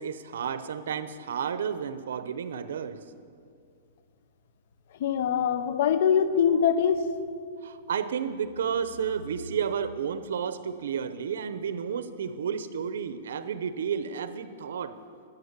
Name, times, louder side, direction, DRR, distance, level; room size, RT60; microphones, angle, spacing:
voice 1, 0.0-3.0 7.6-15.0, right 7 dB, 80° right, 12 dB, 0.9 m, -32 dB
voice 2, 5.0-7.0, left 8 dB, 55° left, 12 dB, 0.9 m, -23 dB
12.0 x 8.8 x 9.9 m, 2.3 s
hypercardioid pair, 165°, 0 cm